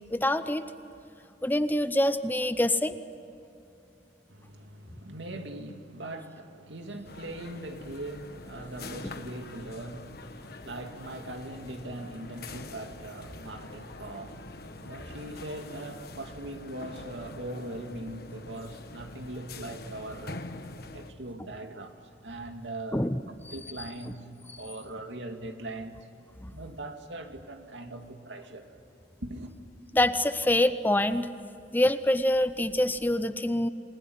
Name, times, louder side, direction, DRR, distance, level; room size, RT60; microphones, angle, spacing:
voice 1, 0.1-0.6 1.4-2.9 22.9-23.2 23.5-23.6 26.4-26.5 29.9-31.3 31.7-33.7, left 1 dB, 10° left, 0.7 m, -25 dB
voice 2, 4.3-20.5 20.9-21.9 22.2-23.1 23.5-24.3 24.6-26.0 26.5-28.7 29.2-29.6, right 1 dB, 85° right, 2.4 m, -40 dB
sound 1, 7.0-21.1, left 2 dB, 55° left, 1.3 m, -45 dB
28.0 x 20.0 x 9.5 m
head